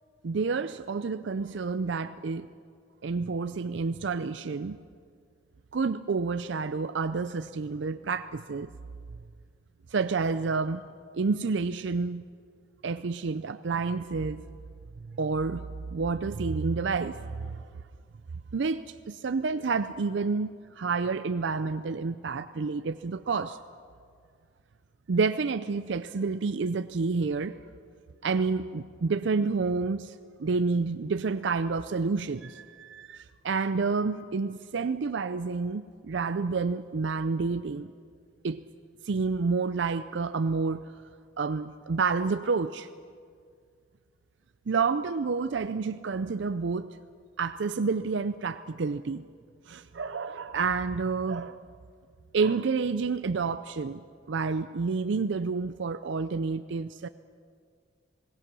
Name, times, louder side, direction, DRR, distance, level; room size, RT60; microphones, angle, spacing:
voice 1, 0.2-2.5 3.0-4.8 5.7-8.7 9.9-10.8 11.1-12.2 12.8-14.4 15.1-17.6 18.5-23.6 25.1-27.6 28.2-37.9 38.4-38.6 39.0-40.9 41.4-42.9 44.7-46.9 47.4-49.3 49.7-51.6 52.3-57.1, right 4 dB, 65° right, 0.5 m, -29 dB
27.0 x 19.0 x 6.1 m
head